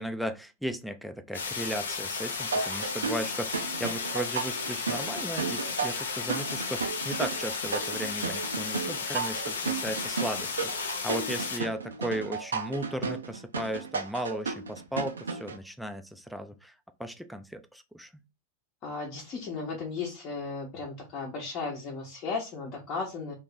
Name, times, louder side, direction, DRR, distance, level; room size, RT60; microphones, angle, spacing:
voice 1, 0.0-16.7 17.0-18.1, equal, ahead, 0.4 m, -36 dB
sound 1, 1.3-11.6, left 5 dB, 70° left, 0.5 m, -34 dB
sound 2, 2.5-15.6, right 5 dB, 70° right, 0.4 m, -34 dB
voice 2, 18.8-23.3, left 4 dB, 35° left, 0.8 m, -35 dB
2.9 x 2.4 x 3.7 m
figure-of-eight pair, 90°, 0 cm